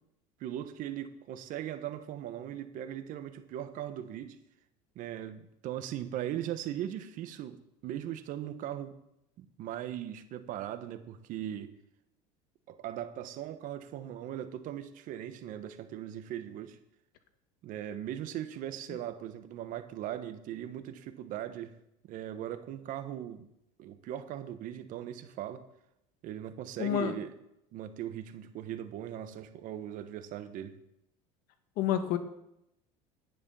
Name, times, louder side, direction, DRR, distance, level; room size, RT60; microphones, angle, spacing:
voice 1, 0.4-4.4 4.9-8.9 9.4-11.7 12.7-16.8 17.6-21.7 22.0-23.5 23.8-25.6 26.2-27.3 27.7-30.7, right 11 dB, 55° right, 11 dB, 1.2 m, -39 dB
voice 2, 26.8-27.2 31.8-32.2, left 11 dB, 65° left, 8 dB, 1.5 m, -28 dB
10.5 x 9.6 x 5.6 m, 0.82 s
supercardioid pair, 125°, 16 cm